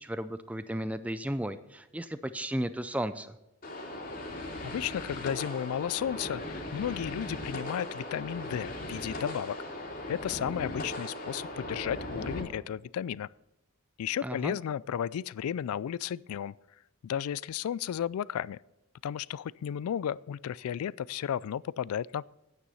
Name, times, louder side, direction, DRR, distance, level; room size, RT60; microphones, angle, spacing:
voice 1, 0.0-3.4 14.2-14.6, right 1 dB, 5° right, 12 dB, 0.4 m, -34 dB
sound 1, 3.6-12.4, left 1 dB, 40° left, 2.5 m, -38 dB
voice 2, 4.6-9.6 10.1-13.3 14.0-16.5 17.0-18.6 19.0-22.2, left 9 dB, 80° left, 23 dB, 0.3 m, -33 dB
9.8 x 9.1 x 5.5 m, 0.93 s
head